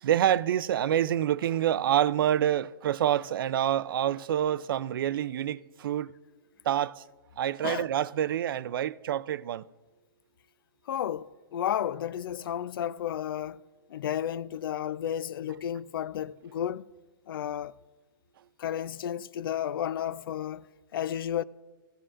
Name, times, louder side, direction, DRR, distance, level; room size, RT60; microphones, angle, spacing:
voice 1, 0.0-6.1 6.7-7.0 7.4-9.7, right 11 dB, 70° right, 0.4 m, -27 dB
voice 2, 10.9-13.6 13.9-16.8 17.3-17.7 18.6-20.7 20.9-21.4, left 10 dB, 70° left, 0.4 m, -32 dB
18.0 x 15.0 x 2.5 m
hypercardioid pair, 160°, 12 cm